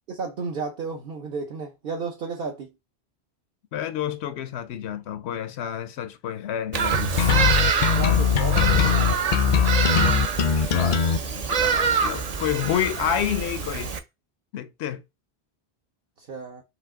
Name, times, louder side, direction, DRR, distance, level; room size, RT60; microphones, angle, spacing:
voice 1, 0.1-2.7 7.8-9.2 16.2-16.6, right 4 dB, 60° right, 1.0 m, -33 dB
voice 2, 3.7-7.3 10.4-13.9 14.5-15.0, left 9 dB, 85° left, 0.8 m, -29 dB
Bird vocalization bird call bird song, 6.7-14.0, right 6 dB, 45° right, 0.6 m, -26 dB
sound 1, 7.2-11.2, left 7 dB, 55° left, 0.6 m, -20 dB
5.1 x 2.8 x 3.6 m
omnidirectional pair, 1.1 m